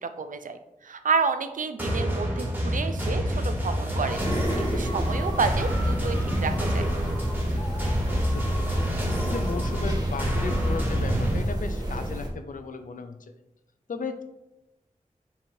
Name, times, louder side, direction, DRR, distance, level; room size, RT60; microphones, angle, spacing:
voice 1, 0.0-4.2 4.7-6.9, right 5 dB, 75° right, 9 dB, 0.4 m, -30 dB
sound 1, 1.8-11.4, equal, 10° right, 1.3 m, -27 dB
sound 2, 3.9-11.2, left 1 dB, 20° left, 0.5 m, -42 dB
sound 3, 4.1-12.3, right 1 dB, 30° right, 1.3 m, -31 dB
voice 2, 8.1-8.8 9.2-13.3 13.9-14.2, left 4 dB, 80° left, 8 dB, 0.4 m, -35 dB
5.7 x 3.1 x 2.7 m, 0.98 s
wide cardioid pair, 75°, 14 cm